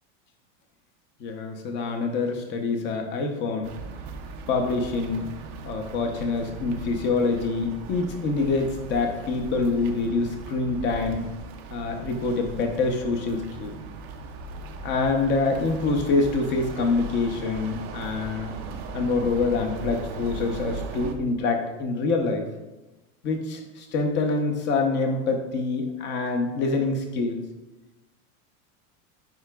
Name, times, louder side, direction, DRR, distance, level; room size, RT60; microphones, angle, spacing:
voice 1, 1.2-3.7 4.5-5.3 5.6-11.3 11.7-13.8 14.8-18.5 18.9-22.4 23.2-27.4, left 3 dB, 25° left, 4 dB, 0.7 m, -26 dB
sound 1, 3.6-21.2, right 3 dB, 30° right, 0.4 m, -38 dB
9.3 x 4.9 x 2.3 m, 1.1 s
supercardioid pair, 160°, 41 cm